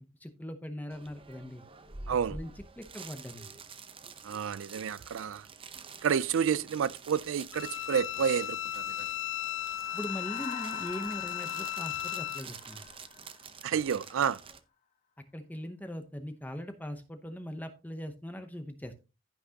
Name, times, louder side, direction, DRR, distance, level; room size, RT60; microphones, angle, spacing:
voice 1, 0.2-1.6 2.1-2.5 2.8-3.5 9.9-12.9 15.3-18.9, equal, 10° left, 0.7 m, -40 dB
sound 1, 0.9-14.6, right 5 dB, 25° right, 0.7 m, -49 dB
voice 2, 2.1-2.4 4.2-5.5 6.0-9.1 13.6-14.4, right 7 dB, 65° right, 0.3 m, -30 dB
Bowed string instrument, 7.5-12.4, left 13 dB, 55° left, 0.4 m, -36 dB
sound 2, 9.4-13.9, left 6 dB, 35° left, 1.1 m, -47 dB
15.0 x 5.9 x 2.8 m
head